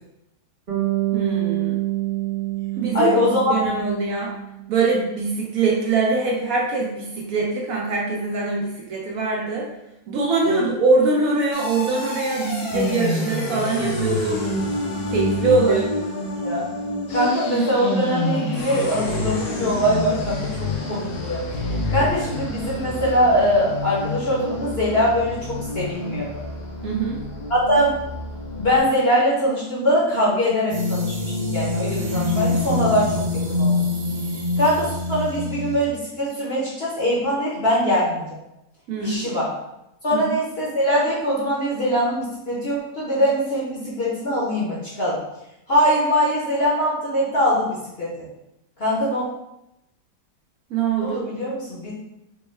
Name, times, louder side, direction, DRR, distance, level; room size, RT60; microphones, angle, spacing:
Bass guitar, 0.7-4.8, right 17 dB, 40° right, 0.8 m, -26 dB
voice 1, 1.1-1.8 2.8-3.1 3.5-4.3 4.7-9.7 10.1-14.4 15.1-16.0 26.8-27.2 38.9-39.3 40.1-40.4 50.7-51.2, right 4 dB, 65° right, -1 dB, 0.9 m, -23 dB
voice 2, 2.9-3.6 10.4-10.6 15.6-15.8 16.3-16.6 17.1-21.4 21.9-26.4 27.5-27.9 28.6-33.8 34.6-38.4 39.0-39.5 40.0-45.2 45.7-48.3 48.8-49.2 51.0-51.9, equal, 45° left, -6 dB, 0.9 m, -22 dB
sound 1, 11.5-28.8, left 2 dB, 85° left, 1.4 m, -28 dB
sound 2, 30.7-35.9, left 2 dB, 85° right, 1.3 m, -24 dB
4.4 x 2.1 x 3.1 m, 0.88 s
omnidirectional pair, 1.7 m